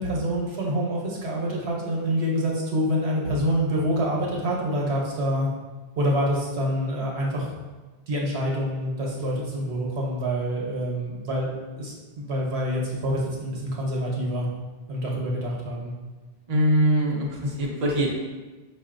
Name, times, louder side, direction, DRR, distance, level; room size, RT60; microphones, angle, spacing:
voice 1, 0.0-5.5 6.0-7.5 8.1-11.5 11.8-14.5 14.9-15.9, equal, 85° right, -2 dB, 1.1 m, -26 dB
voice 2, 16.5-18.1, right 1 dB, 45° right, -2 dB, 0.7 m, -22 dB
5.2 x 2.5 x 2.5 m, 1.3 s
omnidirectional pair, 1.1 m